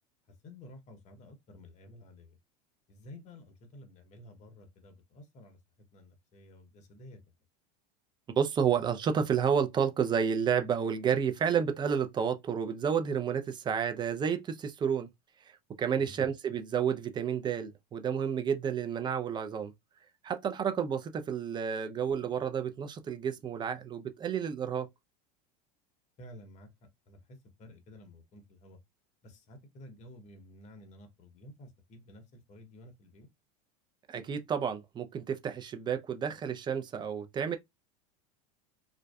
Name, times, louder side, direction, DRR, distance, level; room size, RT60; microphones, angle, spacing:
voice 1, 0.4-2.4 2.9-5.6 5.9-7.2 16.0-16.2 26.2-28.8 29.2-33.3, left 1 dB, 35° left, 0.8 m, -52 dB
voice 2, 8.3-15.1 15.8-19.7 20.2-24.9 34.1-37.6, right 7 dB, 25° right, 0.4 m, -30 dB
2.5 x 2.2 x 2.3 m
supercardioid pair, 115°, 19 cm